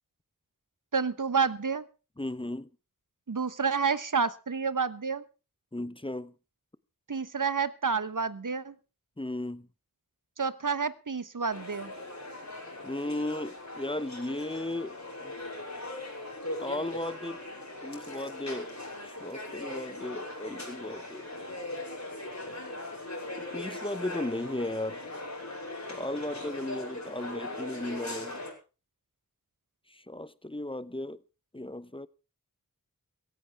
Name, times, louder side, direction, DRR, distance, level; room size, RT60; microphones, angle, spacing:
voice 1, 0.9-1.8 3.3-5.2 7.1-8.7 10.4-11.9, right 5 dB, 60° right, 1.1 m, -29 dB
voice 2, 2.2-2.7 5.7-6.3 9.2-9.7 12.8-15.3 16.6-17.4 17.8-18.7 19.0-21.2 23.5-25.0 25.9-28.4 29.9-31.2 31.5-32.1, left 1 dB, 15° left, 0.8 m, -35 dB
sound 1, 11.5-28.5, left 2 dB, 50° left, 5.5 m, -40 dB
17.0 x 15.5 x 3.5 m
wide cardioid pair, 45°, 35 cm